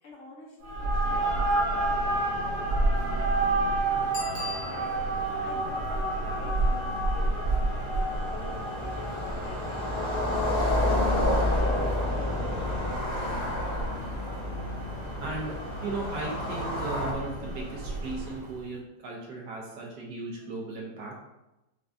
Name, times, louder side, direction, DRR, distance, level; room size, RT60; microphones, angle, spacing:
voice 1, 0.0-5.0 5.4-10.8, left 1 dB, 65° left, -2 dB, 0.8 m, -47 dB
sound 1, 0.6-18.5, right 2 dB, 45° right, 1.0 m, -30 dB
Bicycle bell, 4.1-5.3 10.7-10.8, left 5 dB, 80° left, 1.6 m, -40 dB
sound 2, 4.1-4.2 4.6-4.7 4.9-17.1, left 1 dB, 35° left, 0.4 m, -30 dB
voice 2, 15.2-21.1, right 3 dB, 75° right, -2 dB, 1.4 m, -37 dB
4.7 x 2.2 x 2.5 m, 0.96 s
omnidirectional pair, 1.9 m